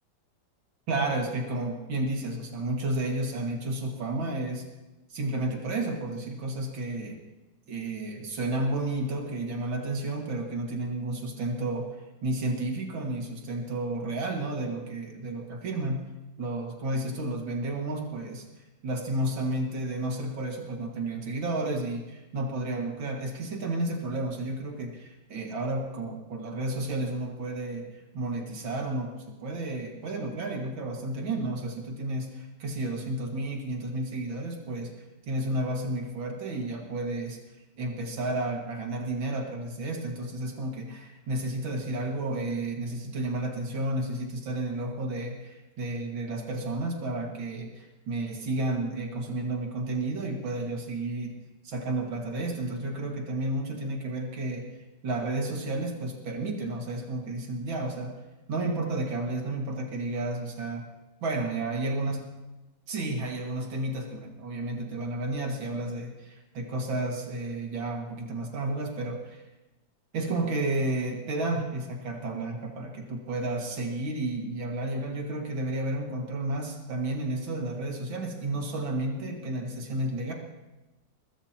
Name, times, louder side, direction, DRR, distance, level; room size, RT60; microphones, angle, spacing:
voice 1, 0.9-4.6 5.1-7.2 7.7-11.9 12.2-16.1 16.4-18.4 18.8-34.9 35.3-37.4 37.8-51.3 51.6-54.7 55.0-58.1 58.5-60.8 61.2-62.2 62.9-69.4 70.1-80.3, right 2 dB, 85° right, 0 dB, 2.8 m, -32 dB
23.5 x 21.0 x 3.0 m, 1.1 s
omnidirectional pair, 2.1 m